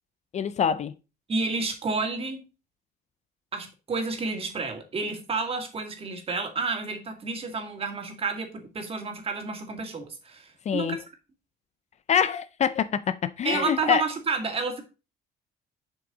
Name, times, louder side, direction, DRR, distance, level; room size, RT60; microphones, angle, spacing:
voice 1, 0.3-0.9 10.7-11.0 12.1-14.0, left 8 dB, 40° left, 0.5 m, -25 dB
voice 2, 1.3-2.4 3.5-11.0 13.4-14.8, right 4 dB, 35° right, 2.1 m, -30 dB
7.3 x 6.0 x 3.9 m
cardioid pair, 110°, 17 cm